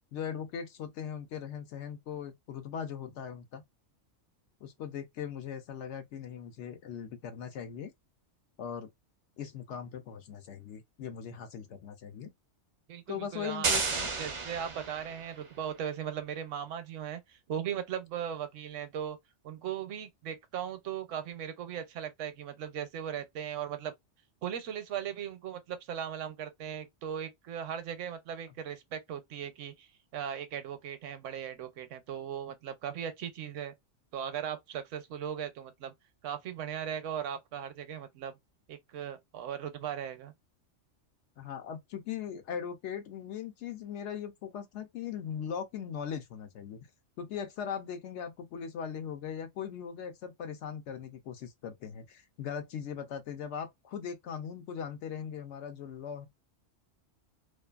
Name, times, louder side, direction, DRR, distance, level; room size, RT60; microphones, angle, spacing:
voice 1, 0.1-3.6 4.6-7.9 8.6-8.9 9.4-12.3 13.1-14.1 41.4-46.8 47.2-56.3, left 8 dB, 70° left, 0.8 m, -39 dB
voice 2, 12.9-13.8 14.2-19.2 19.4-23.9 24.4-29.9 30.1-33.7 34.1-35.9 36.2-38.4 38.7-40.3, right 9 dB, 75° right, 1.0 m, -38 dB
sound 1, 13.6-15.5, right 4 dB, 45° right, 0.4 m, -32 dB
2.6 x 2.4 x 2.3 m
omnidirectional pair, 1.3 m